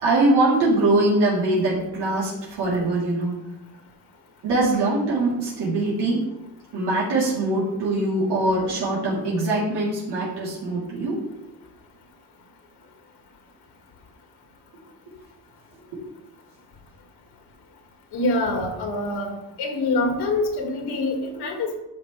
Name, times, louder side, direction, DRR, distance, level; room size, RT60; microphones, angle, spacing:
voice 1, 0.0-3.3 4.4-6.2 6.7-11.2 15.9-16.0, right 2 dB, 80° right, -8 dB, 3.6 m, -22 dB
voice 2, 18.1-19.3 19.6-21.8, left 2 dB, 75° left, 2 dB, 2.4 m, -25 dB
12.5 x 6.1 x 3.4 m, 0.94 s
cardioid pair, 125°, 40 cm